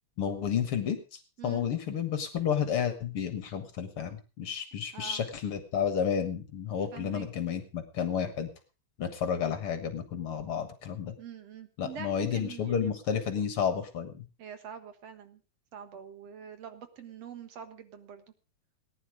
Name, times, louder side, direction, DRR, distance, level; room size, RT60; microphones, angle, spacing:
voice 1, 0.2-8.5 9.0-11.1 11.8-14.1, left 7 dB, 55° left, 9 dB, 2.1 m, -31 dB
voice 2, 6.9-7.3 11.2-12.9 14.4-15.4 15.7-18.2, right 8 dB, 60° right, 9 dB, 2.5 m, -44 dB
18.5 x 10.5 x 4.9 m, 0.34 s
omnidirectional pair, 3.3 m